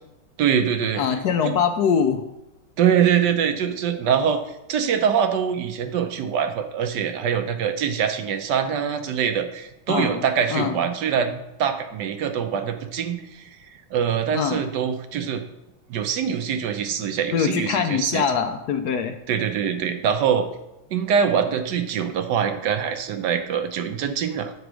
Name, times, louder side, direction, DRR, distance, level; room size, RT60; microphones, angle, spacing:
voice 1, 0.4-1.0 1.4-1.5 2.8-15.4 15.9-18.2 19.3-20.5 20.9-24.5, right 8 dB, 65° right, 8 dB, 1.3 m, -24 dB
voice 2, 1.0-2.3 9.9-10.2 10.5-10.8 14.3-14.7 17.3-19.2, left 7 dB, 70° left, 7 dB, 0.9 m, -23 dB
8.0 x 4.7 x 6.2 m, 0.94 s
omnidirectional pair, 2.2 m